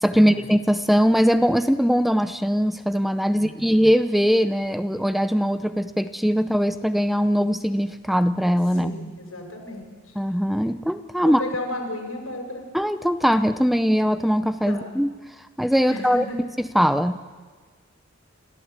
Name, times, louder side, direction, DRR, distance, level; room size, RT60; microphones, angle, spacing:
voice 1, 0.0-8.9 10.2-11.4 12.7-15.1 15.6-16.3 16.6-17.2, equal, ahead, 11 dB, 0.6 m, -21 dB
voice 2, 3.3-3.7 8.8-9.9 11.2-12.7 14.7-14.9 15.9-16.4, left 1 dB, 90° left, 2 dB, 6.2 m, -33 dB
28.0 x 15.0 x 8.2 m, 1.4 s
head